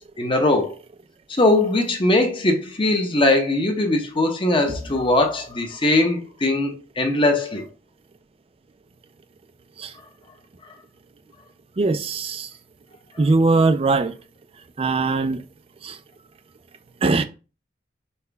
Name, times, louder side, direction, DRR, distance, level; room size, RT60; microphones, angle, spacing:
voice 1, 0.2-0.8 1.3-7.7, left 2 dB, 30° left, 0.8 m, -20 dB
voice 2, 11.8-12.5 13.2-14.1 14.8-15.4 15.8-16.0 17.0-17.2, right 3 dB, 35° right, 0.4 m, -20 dB
5.5 x 2.3 x 3.4 m
head